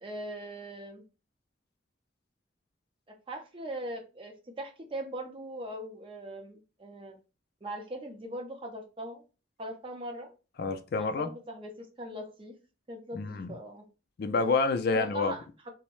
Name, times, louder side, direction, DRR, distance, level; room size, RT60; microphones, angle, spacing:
voice 1, 0.0-1.0 3.1-7.2 7.6-9.2 9.6-10.3 10.9-12.5 12.9-13.8 14.9-15.7, right 1 dB, 30° right, 0.6 m, -40 dB
voice 2, 10.6-11.3 13.1-13.5 14.2-15.3, left 4 dB, 55° left, 0.3 m, -28 dB
2.6 x 2.0 x 3.0 m
head